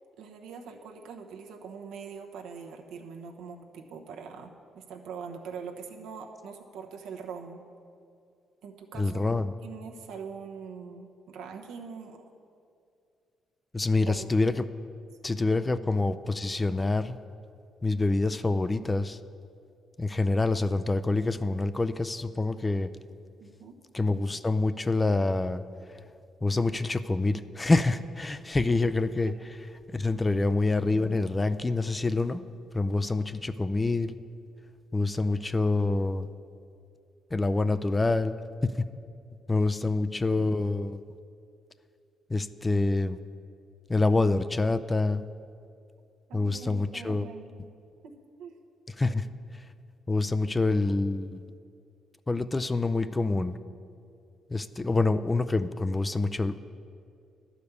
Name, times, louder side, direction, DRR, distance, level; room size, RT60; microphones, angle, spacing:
voice 1, 0.2-7.6 8.6-9.2 9.6-12.2 14.0-14.3 23.4-23.7 40.1-40.2 46.3-47.7 48.0-48.1 48.4-48.6, right 6 dB, 90° right, 2 dB, 0.9 m, -43 dB
voice 2, 8.9-9.5 13.7-14.7 15.2-17.2 17.8-19.2 20.0-22.9 23.9-25.6 26.4-29.3 29.9-32.4 32.7-34.2 34.9-36.3 37.3-38.4 38.6-38.7 39.5-41.0 42.3-43.2 43.9-45.2 46.3-47.3 49.0-49.3 49.5-49.6 50.1-51.4 52.3-53.6 54.5-56.6, left 3 dB, 20° left, 13 dB, 0.4 m, -26 dB
11.0 x 5.1 x 8.2 m, 2.4 s
cardioid pair, 90°, 0 cm